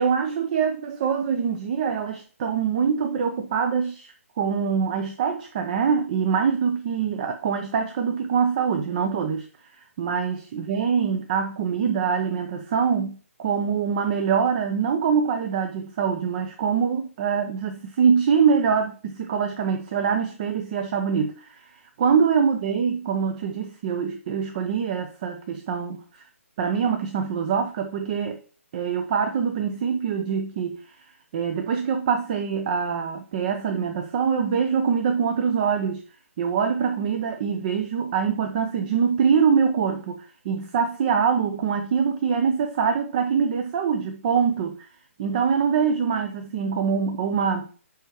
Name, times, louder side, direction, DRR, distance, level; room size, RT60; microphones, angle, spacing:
voice 1, 0.0-9.5 9.7-21.6 22.0-26.2 26.6-28.4 28.7-31.0 31.3-36.0 36.4-44.9 45.2-47.7, right 6 dB, 35° right, 0.6 m, -24 dB
8.7 x 3.6 x 3.0 m
figure-of-eight pair, 140°, 8 cm